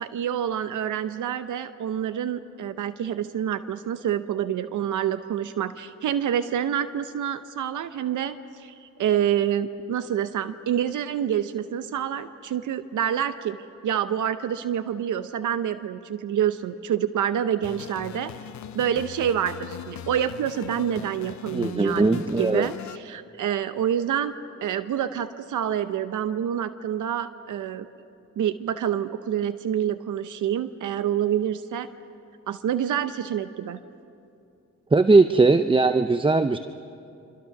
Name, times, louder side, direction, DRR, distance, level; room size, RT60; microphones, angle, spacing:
voice 1, 0.0-13.6 13.8-18.3 18.7-24.3 24.6-27.9 28.4-31.9 32.5-33.8, right 9 dB, 75° right, 12 dB, 0.7 m, -27 dB
sound 1, 17.6-23.0, left 11 dB, 65° left, 0.6 m, -39 dB
voice 2, 21.5-22.7 34.9-36.6, right 3 dB, 15° right, 10 dB, 0.6 m, -19 dB
25.0 x 25.0 x 5.9 m, 2.7 s
cardioid pair, 60°, 30 cm